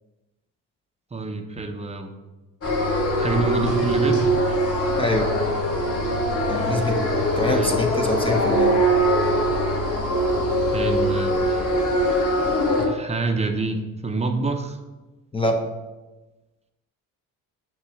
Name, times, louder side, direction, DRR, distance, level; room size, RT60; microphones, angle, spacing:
voice 1, 1.1-2.1 3.2-4.2 7.4-7.8 10.7-11.6 12.8-14.8, right 3 dB, 20° right, 6 dB, 0.7 m, -27 dB
sound 1, 2.6-12.9, equal, 45° left, 1.5 m, -22 dB
voice 2, 5.0-5.4 6.5-6.9 7.4-8.8 15.3-15.6, left 2 dB, 15° left, 3 dB, 0.6 m, -24 dB
6.8 x 3.0 x 5.9 m, 1.1 s
cardioid pair, 105°, 34 cm